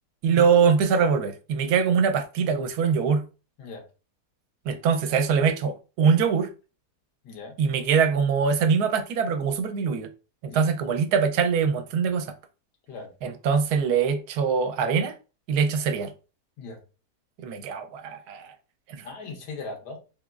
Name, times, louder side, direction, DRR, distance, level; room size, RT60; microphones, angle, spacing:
voice 1, 0.2-3.2 4.7-6.5 7.6-10.1 10.4-12.3 13.2-15.1 15.5-16.1 17.4-18.5 18.9-19.1, right 6 dB, 75° right, 1.1 m, -23 dB
voice 2, 7.2-7.6 10.5-10.7 12.9-13.1 16.6-16.8 19.0-20.0, left 3 dB, 90° left, 1.6 m, -38 dB
3.6 x 2.9 x 2.3 m
omnidirectional pair, 1.7 m